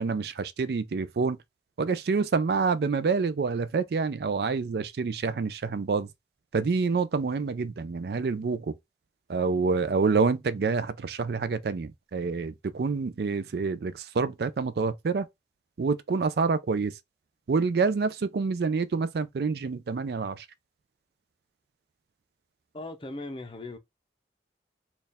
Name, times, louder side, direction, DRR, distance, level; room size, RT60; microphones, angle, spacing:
voice 1, 0.0-1.4 1.8-6.1 6.5-8.7 9.3-15.3 15.8-16.9 17.5-20.5, right 4 dB, 65° right, 0.4 m, -27 dB
voice 2, 22.7-23.8, left 2 dB, 30° left, 0.6 m, -38 dB
4.3 x 2.3 x 3.4 m
head